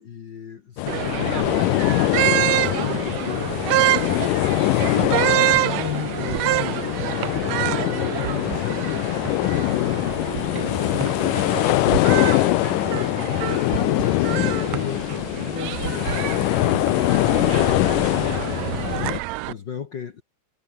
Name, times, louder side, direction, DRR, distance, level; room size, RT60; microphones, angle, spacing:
voice 1, 0.0-9.2 9.5-10.2 10.6-20.2, left 7 dB, 55° left, 1.3 m, -36 dB
sound 1, 0.8-19.2, left 18 dB, 80° left, 2.3 m, -23 dB
sound 2, 0.9-19.5, right 19 dB, 90° right, 1.5 m, -27 dB
sound 3, 3.3-17.2, right 11 dB, 60° right, 2.1 m, -35 dB
omnidirectional pair, 3.7 m